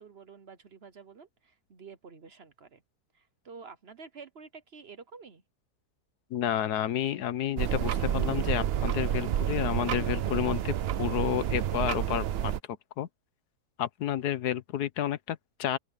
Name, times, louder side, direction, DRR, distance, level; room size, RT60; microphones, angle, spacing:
voice 1, 0.0-2.8 3.1-5.4, right 5 dB, 45° right, 1.0 m, -49 dB
voice 2, 6.3-12.5 13.0-13.1 13.8-15.8, left 11 dB, 80° left, 1.4 m, -30 dB
sound 1, 7.6-12.6, right 10 dB, 65° right, 0.6 m, -29 dB
open air
omnidirectional pair, 1.7 m